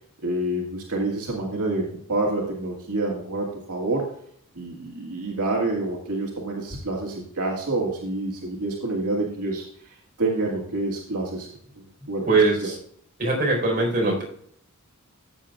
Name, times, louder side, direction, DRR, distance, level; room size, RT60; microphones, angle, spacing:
voice 1, 0.2-4.1 4.6-11.5 11.8-12.3, right 2 dB, 85° right, -2 dB, 2.0 m, -28 dB
voice 2, 12.3-12.8 13.2-14.2, right 3 dB, 40° right, -2 dB, 4.5 m, -21 dB
15.5 x 7.7 x 2.4 m, 0.64 s
head